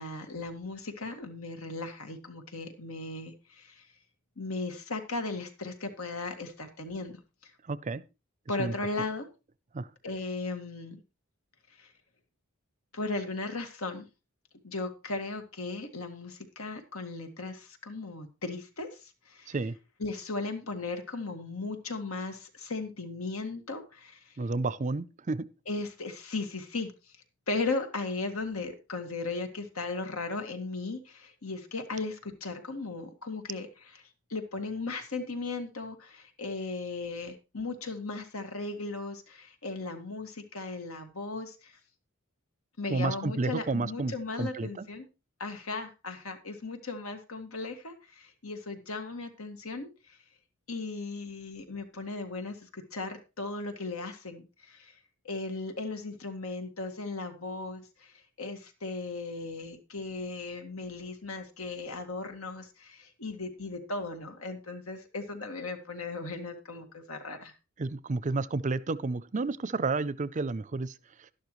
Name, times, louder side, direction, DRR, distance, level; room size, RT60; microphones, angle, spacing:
voice 1, 0.0-3.9 4.4-7.5 8.5-9.3 10.0-11.0 11.8-11.9 12.9-14.1 14.6-19.6 20.0-24.4 25.7-26.9 27.5-34.0 34.3-41.7 42.8-45.1 45.4-50.2 50.7-54.9 55.2-58.1 58.4-67.5, left 3 dB, 85° left, 2.0 m, -37 dB
voice 2, 7.7-8.0 8.6-8.7 9.7-9.9 19.5-19.8 24.4-25.5 42.9-44.9 67.8-70.9, right 3 dB, 35° right, 0.5 m, -31 dB
12.0 x 11.5 x 3.1 m
head